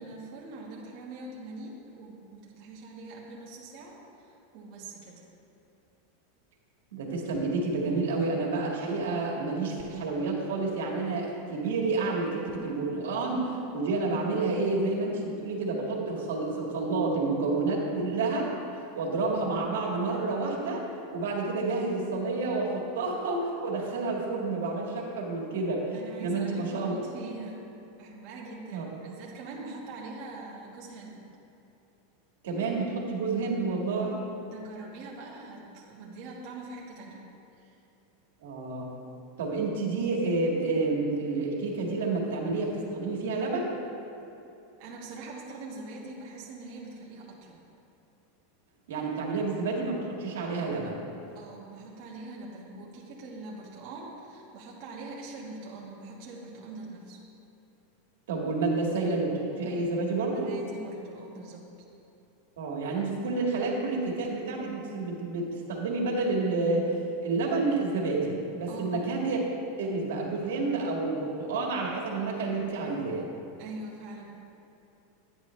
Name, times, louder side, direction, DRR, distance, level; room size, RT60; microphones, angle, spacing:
voice 1, 0.0-5.2 25.9-27.7 28.0-31.3 34.4-37.2 37.6-37.8 44.8-47.6 51.3-57.2 60.3-61.6 68.7-69.1 73.6-74.3, right 2 dB, 40° right, -5 dB, 1.3 m, -43 dB
voice 2, 6.9-18.5 18.7-20.8 21.1-25.9 26.2-27.0 28.7-28.8 32.4-34.2 38.4-38.9 39.4-43.7 48.9-51.0 58.3-60.5 62.6-66.9 67.2-69.4 69.8-73.4, right 3 dB, 80° right, -1 dB, 1.9 m, -29 dB
10.0 x 9.7 x 3.2 m, 2.9 s
supercardioid pair, 165°, 0 cm